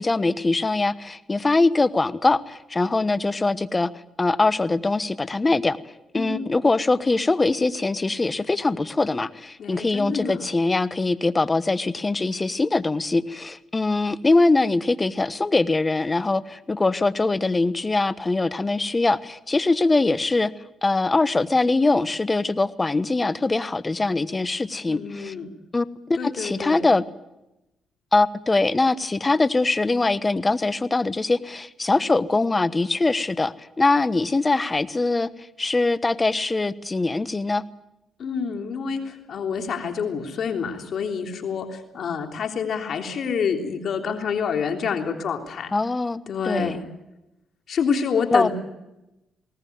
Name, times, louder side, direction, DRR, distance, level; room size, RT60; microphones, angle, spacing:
voice 1, 0.0-3.9 4.2-5.8 6.1-20.5 20.8-25.3 25.7-25.9 26.2-27.0 28.1-35.3 35.6-37.6 45.7-46.8 48.3-48.5, left 3 dB, 20° left, 14 dB, 1.1 m, -22 dB
voice 2, 6.1-6.5 9.6-10.4 24.9-25.5 26.1-26.9 38.2-45.7 46.3-46.8 47.7-48.5, left 6 dB, 60° left, 4 dB, 3.4 m, -27 dB
21.0 x 18.5 x 9.4 m, 0.93 s
cardioid pair, 90°, 0 cm